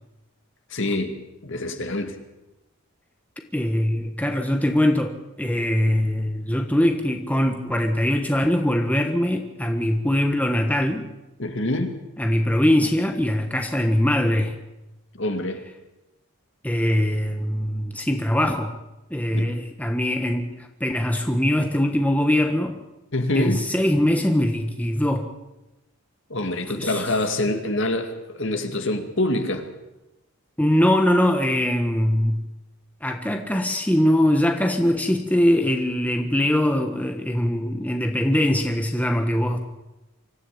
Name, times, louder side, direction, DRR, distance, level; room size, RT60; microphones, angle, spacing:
voice 1, 0.7-1.2 1.4-2.2 11.4-11.9 15.2-15.6 19.3-19.5 23.1-23.6 26.3-29.7, left 1 dB, 55° left, 6 dB, 2.3 m, -25 dB
voice 2, 3.5-11.1 12.2-14.6 16.6-18.8 19.1-22.7 23.3-25.3 26.7-27.1 30.6-32.4 33.0-39.6, left 1 dB, 5° left, 4 dB, 1.3 m, -22 dB
25.0 x 14.0 x 8.6 m, 1.0 s
head